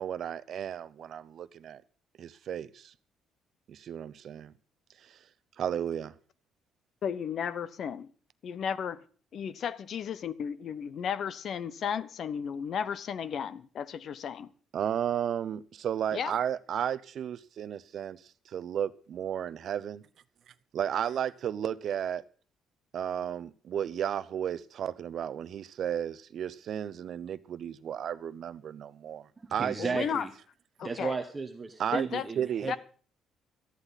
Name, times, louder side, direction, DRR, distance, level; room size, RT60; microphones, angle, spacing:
voice 1, 0.0-1.8 2.2-2.9 3.7-4.5 5.0-5.2 5.6-6.1 14.7-20.0 20.7-22.2 22.9-30.1 31.8-32.1 32.4-32.7, right 9 dB, 50° right, 0.7 m, -33 dB
voice 2, 7.0-8.1 8.4-9.0 9.3-14.5 16.1-16.3 29.8-30.3 30.8-31.1 31.9-32.2 32.7-32.8, left 7 dB, 45° left, 0.7 m, -34 dB
voice 3, 29.4-30.3 30.8-32.8, right 4 dB, 20° right, 1.1 m, -34 dB
18.0 x 13.0 x 4.1 m
cardioid pair, 165°, 0 cm